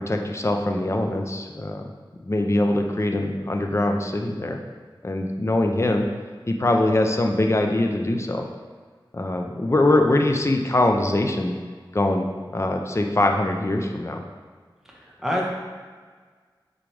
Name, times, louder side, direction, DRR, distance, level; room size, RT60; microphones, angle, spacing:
voice 1, 0.1-1.8 2.2-4.6 5.0-6.1 6.5-8.5 9.1-11.5 11.9-14.2, left 1 dB, 35° left, 3 dB, 0.6 m, -22 dB
voice 2, 14.9-15.5, equal, 5° right, -3 dB, 1.2 m, -27 dB
6.1 x 4.8 x 3.3 m, 1.5 s
wide cardioid pair, 60°, 8 cm